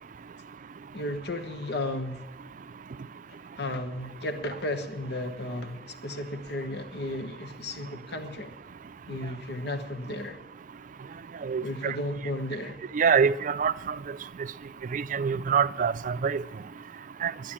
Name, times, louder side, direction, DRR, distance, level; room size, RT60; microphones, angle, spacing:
voice 1, 0.9-2.2 3.6-8.6 9.1-10.4 11.6-12.8, left 1 dB, 65° left, 1.2 m, -34 dB
voice 2, 11.4-12.0 12.9-14.0 14.9-16.4 17.2-17.3, right 6 dB, 50° right, 0.4 m, -25 dB
12.0 x 10.5 x 8.7 m
head